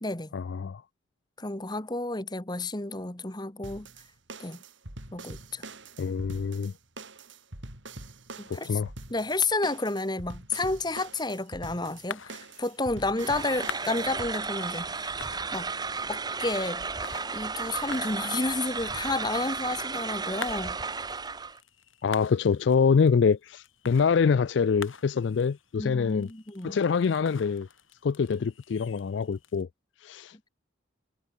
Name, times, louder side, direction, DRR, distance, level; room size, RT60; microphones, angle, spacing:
voice 1, 0.3-0.8 6.0-6.7 8.5-8.9 22.0-26.3 26.6-27.7 28.0-29.7 30.0-30.3, left 5 dB, 60° left, 0.4 m, -25 dB
voice 2, 1.4-3.9 4.4-4.6 5.1-5.6 8.4-8.8 9.1-15.1 15.5-15.7 16.1-16.8 17.3-20.8 25.8-26.8, left 2 dB, 20° left, 1.5 m, -31 dB
sound 1, 3.6-14.3, right 2 dB, 65° right, 4.1 m, -44 dB
sound 2, 11.5-29.6, left 5 dB, 80° left, 6.9 m, -47 dB
sound 3, 13.2-21.6, right 4 dB, 20° right, 1.0 m, -34 dB
head